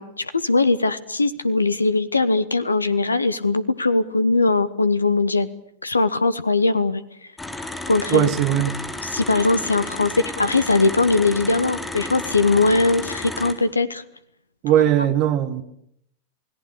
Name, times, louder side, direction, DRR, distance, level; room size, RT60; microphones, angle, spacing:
voice 1, 0.0-5.5 5.8-7.0 7.9-8.3 9.0-14.0, left 3 dB, 80° left, 15 dB, 1.1 m, -20 dB
sound 1, 7.4-13.5, left 2 dB, 10° left, 3.8 m, -32 dB
voice 2, 8.1-8.7 14.6-15.6, right 11 dB, 40° right, 12 dB, 1.7 m, -19 dB
28.5 x 18.5 x 8.3 m, 0.72 s
figure-of-eight pair, 90°, 0 cm